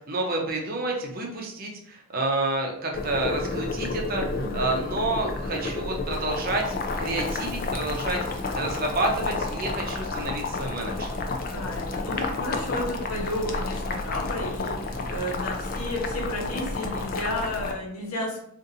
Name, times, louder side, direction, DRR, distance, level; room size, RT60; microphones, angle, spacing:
voice 1, 0.1-11.1, right 2 dB, 40° right, 1 dB, 0.6 m, -29 dB
Boiling, 2.9-17.7, left 3 dB, 40° left, 0.3 m, -31 dB
voice 2, 4.4-4.8 11.5-18.4, left 1 dB, 85° left, -2 dB, 1.1 m, -32 dB
3.9 x 2.5 x 2.6 m, 0.68 s
head